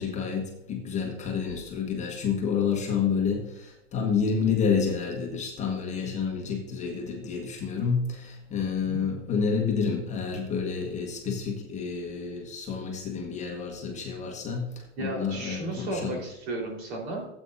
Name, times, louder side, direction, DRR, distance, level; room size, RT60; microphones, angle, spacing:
voice 1, 0.0-16.2, left 6 dB, 20° left, 0 dB, 1.2 m, -29 dB
voice 2, 15.0-17.3, right 2 dB, 60° right, -1 dB, 4.0 m, -34 dB
14.5 x 8.3 x 2.6 m, 0.88 s
supercardioid pair, 145°, 36 cm